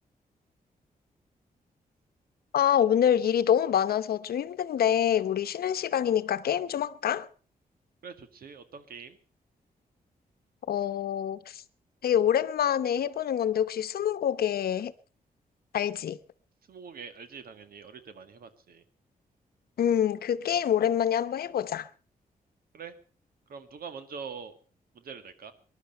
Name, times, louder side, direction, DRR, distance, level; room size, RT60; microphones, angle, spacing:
voice 1, 2.5-7.3 10.7-11.6 12.0-14.9 15.7-16.2 19.8-21.9, left 9 dB, 85° left, 0.9 m, -26 dB
voice 2, 8.0-9.2 16.7-18.8 22.7-23.0 23.5-24.5 24.9-25.5, right 6 dB, 75° right, 1.9 m, -44 dB
20.0 x 11.5 x 5.5 m
cardioid pair, 105°, 15 cm